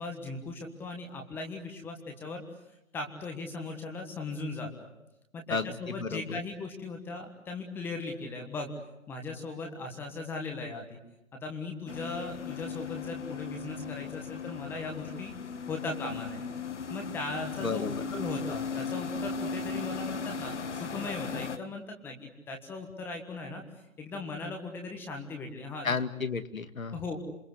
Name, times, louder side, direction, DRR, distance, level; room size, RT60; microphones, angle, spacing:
voice 1, 0.0-2.4 2.9-4.9 5.3-8.7 9.1-11.0 11.3-15.3 15.7-16.4 16.9-23.6 24.0-25.9 26.9-27.2, left 3 dB, 5° left, 3 dB, 1.5 m, -38 dB
voice 2, 5.5-6.4 17.6-18.0 25.8-27.0, left 4 dB, 85° left, 9 dB, 2.4 m, -32 dB
sound 1, 11.9-21.6, left 5 dB, 60° left, 1.8 m, -37 dB
27.5 x 23.0 x 8.1 m, 0.85 s
hypercardioid pair, 160°, 40 cm